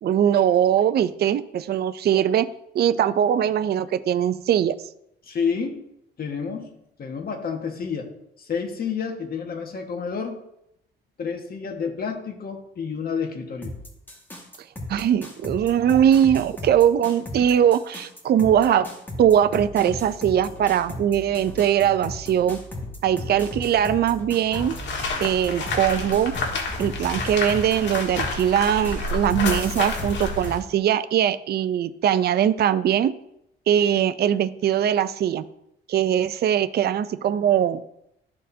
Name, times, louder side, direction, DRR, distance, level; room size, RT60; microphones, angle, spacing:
voice 1, 0.0-2.5 2.7-4.7 14.9-18.9 19.2-22.6 23.0-24.7 25.2-26.3 26.8-33.1 33.7-35.4 35.9-37.8, right 9 dB, 55° right, 13 dB, 0.5 m, -21 dB
voice 2, 5.2-5.8 6.2-6.7 7.0-8.1 8.4-10.4 11.2-13.7, left 6 dB, 50° left, 2 dB, 1.6 m, -29 dB
sound 1, 13.6-30.5, left 2 dB, 10° left, 1.8 m, -37 dB
sound 2, 24.5-30.6, left 3 dB, 65° left, 1.7 m, -29 dB
13.0 x 4.4 x 2.7 m, 0.79 s
cardioid pair, 90°, 20 cm